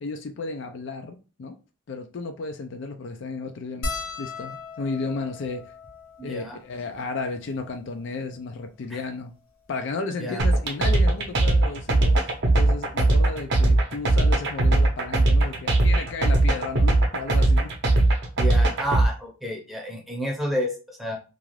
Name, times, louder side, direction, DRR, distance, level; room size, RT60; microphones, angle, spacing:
voice 1, 0.0-1.6 1.9-3.9 4.2-5.7 6.2-9.3 9.7-17.7, left 3 dB, 55° left, 0.4 m, -33 dB
sound 1, 3.8-8.4 9.2-9.3 9.5-9.7 10.9-11.1 12.6-12.7 12.9-13.1, left 3 dB, 75° left, 0.8 m, -38 dB
voice 2, 6.2-6.6 8.9-9.0 10.2-10.5 18.4-21.2, equal, ahead, 0.7 m, -30 dB
sound 2, 10.4-19.1, right 2 dB, 55° right, 0.6 m, -19 dB
2.5 x 2.3 x 3.1 m
head